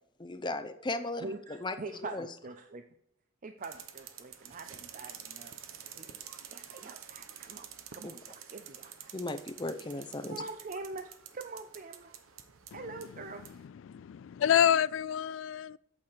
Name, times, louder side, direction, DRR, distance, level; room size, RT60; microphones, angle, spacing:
voice 1, 0.2-1.2 1.6-1.7 2.1-2.3 9.1-10.4, left 2 dB, 20° left, 0.6 m, -36 dB
voice 2, 1.2-2.8 3.4-5.5 6.0-6.1 6.5-7.7 7.9-9.1 10.3-12.1 12.7-13.4, right 3 dB, 40° right, 0.5 m, -44 dB
sound 1, 3.6-13.6, right 9 dB, 85° right, 0.9 m, -49 dB
voice 3, 12.7-15.8, left 9 dB, 65° left, 0.3 m, -29 dB
8.7 x 6.7 x 4.5 m
head